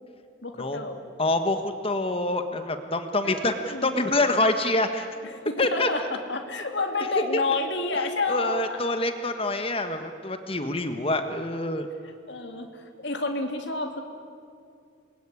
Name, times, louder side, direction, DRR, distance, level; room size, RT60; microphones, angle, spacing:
voice 1, 0.4-1.0 3.2-3.9 5.2-8.8 12.0-14.0, left 3 dB, 55° left, 4 dB, 2.9 m, -30 dB
voice 2, 1.2-5.1 5.6-5.9 7.9-11.9, left 2 dB, 30° left, 8 dB, 1.4 m, -26 dB
26.5 x 21.5 x 9.8 m, 2.4 s
head